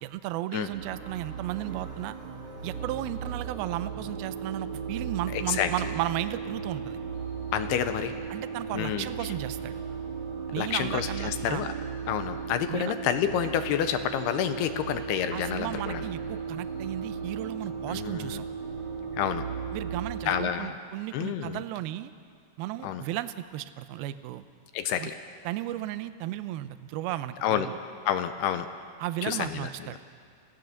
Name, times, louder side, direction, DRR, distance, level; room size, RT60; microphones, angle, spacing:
voice 1, 0.0-2.2 2.6-7.0 8.3-9.8 10.5-11.6 12.7-12.9 15.3-18.5 19.7-22.1 22.6-24.5 25.0-25.1 25.4-27.8 29.0-30.0, right 14 dB, 80° right, 12 dB, 2.2 m, -34 dB
sound 1, 0.7-20.5, right 6 dB, 50° right, 2.8 m, -36 dB
voice 2, 5.3-5.7 7.5-8.2 8.7-9.1 10.6-11.7 12.1-16.0 17.9-18.4 19.1-19.5 20.3-20.8 21.1-21.6 22.8-23.0 24.7-25.2 27.4-27.7 28.1-28.7 29.2-29.7, left 10 dB, 80° left, 9 dB, 2.5 m, -29 dB
26.5 x 17.0 x 6.5 m, 2.2 s
omnidirectional pair, 5.1 m